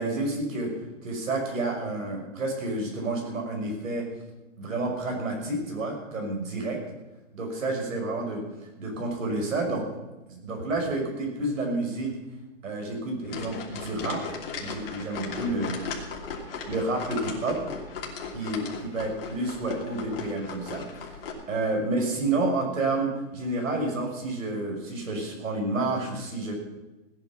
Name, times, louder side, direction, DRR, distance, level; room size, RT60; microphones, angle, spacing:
voice 1, 0.0-4.1 4.6-6.8 7.3-8.4 8.8-9.9 10.3-12.2 12.6-14.2 14.6-15.7 16.7-17.6 18.3-21.2 21.5-26.5, right 2 dB, 85° right, 1 dB, 5.9 m, -29 dB
sound 1, 13.2-21.3, left 5 dB, 45° left, 3.1 m, -37 dB
17.5 x 10.0 x 6.0 m, 1.1 s
hypercardioid pair, 175°, 38 cm